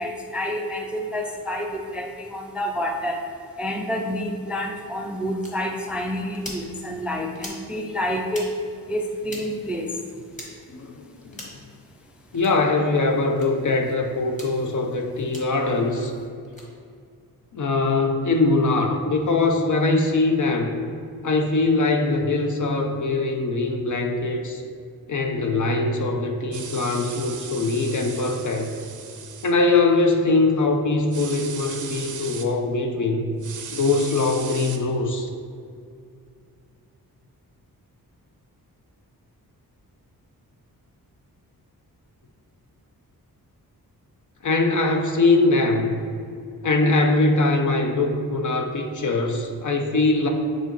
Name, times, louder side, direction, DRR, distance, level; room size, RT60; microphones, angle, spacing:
voice 1, 0.0-3.2 3.6-8.5 8.9-10.0, equal, 5° right, 2 dB, 0.4 m, -28 dB
sound 1, 5.4-5.5 6.3-6.6 7.4-7.6 8.3-8.5 9.3-9.4 10.3-10.5 11.3-11.6 12.3-12.5 13.4-13.5 14.3-14.5 15.3-15.4 16.4-16.7, left 1 dB, 20° left, 1.4 m, -39 dB
voice 2, 10.7-11.4 12.3-16.1 17.5-20.8 21.2-24.6 25.1-28.7 29.4-33.4 33.7-35.3 44.4-46.0 46.6-50.3, left 3 dB, 55° left, 3 dB, 0.7 m, -22 dB
sound 2, 26.5-29.5 31.1-32.5 33.4-34.8, right 6 dB, 55° right, 0.6 m, -37 dB
9.2 x 3.9 x 3.0 m, 2.3 s
wide cardioid pair, 125°, 37 cm